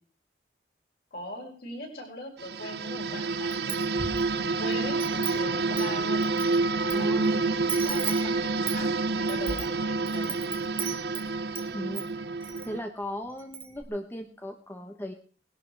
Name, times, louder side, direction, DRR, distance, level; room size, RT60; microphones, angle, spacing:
voice 1, 1.1-6.2 6.8-10.4, left 1 dB, 55° left, 0 dB, 5.4 m, -41 dB
sound 1, 2.4-12.8, right 3 dB, 65° right, 0.7 m, -28 dB
Wind chime, 3.5-4.3 4.7-7.0 7.2-7.3 7.7-11.7 11.9-12.7 13.0-13.1 13.4-13.8, right 7 dB, 30° right, 1.8 m, -37 dB
voice 2, 6.9-7.4 11.7-12.1 12.7-15.1, equal, 10° left, 5 dB, 1.0 m, -36 dB
19.0 x 11.5 x 4.6 m, 0.42 s
head